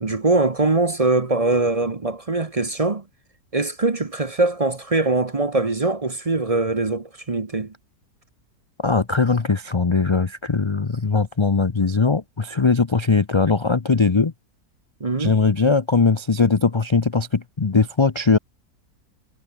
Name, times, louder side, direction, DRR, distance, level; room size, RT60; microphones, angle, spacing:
voice 1, 0.0-3.0 3.5-7.7 15.0-15.4, right 3 dB, 25° right, 0.9 m, -22 dB
voice 2, 8.8-14.3 15.2-18.4, left 4 dB, 35° left, 0.4 m, -20 dB
omnidirectional pair, 1.7 m